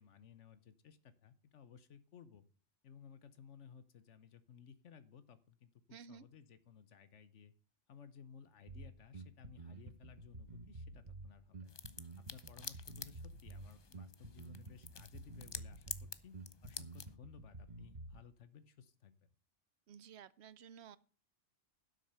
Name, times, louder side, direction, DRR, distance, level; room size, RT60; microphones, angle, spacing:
voice 1, 0.0-2.4 2.8-7.5 7.9-16.4 16.6-19.3, left 7 dB, 80° left, 1.2 m, -58 dB
voice 2, 5.9-6.2 19.9-21.0, right 7 dB, 65° right, 0.9 m, -54 dB
Bass guitar, 8.7-18.3, right 2 dB, 40° right, 1.3 m, -51 dB
sound 1, 11.7-17.2, left 5 dB, 35° left, 0.4 m, -50 dB
12.0 x 6.5 x 6.7 m
omnidirectional pair, 1.2 m